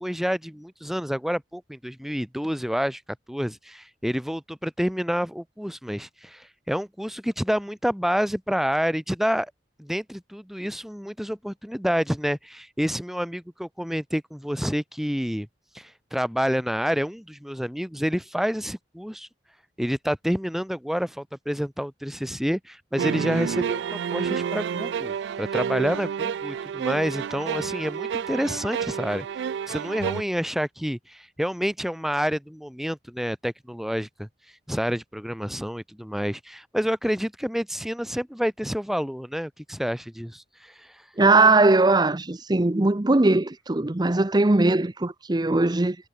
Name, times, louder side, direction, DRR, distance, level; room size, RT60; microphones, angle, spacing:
voice 1, 0.0-3.0 3.3-9.5 9.8-15.5 15.8-19.3 19.8-34.3 34.7-40.9, equal, ahead, 1.8 m, -28 dB
sound 1, 23.0-30.2, right 7 dB, 70° right, 0.3 m, -29 dB
voice 2, 41.2-46.0, right 2 dB, 25° right, 0.8 m, -20 dB
head